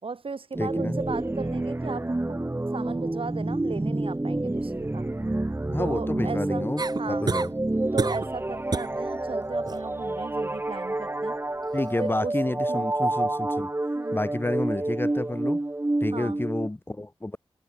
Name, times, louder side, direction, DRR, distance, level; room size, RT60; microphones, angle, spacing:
voice 1, 0.0-2.4 2.7-5.1 5.8-6.7 7.0-7.3 7.9-11.4 12.0-12.4 12.7-12.9 14.0-14.2 16.1-16.4, right 4 dB, 65° right, 4.5 m, -36 dB
sound 1, 0.5-16.7, right 2 dB, 25° right, 1.5 m, -29 dB
voice 2, 0.6-1.0 5.7-7.5 11.7-13.7 14.1-15.6 16.0-17.4, left 2 dB, 20° left, 1.0 m, -30 dB
sound 2, 6.8-7.5 8.0-8.3 8.7-9.0 9.4-9.8 11.6-11.7, right 4 dB, 45° right, 0.7 m, -29 dB
cardioid pair, 45°, 10 cm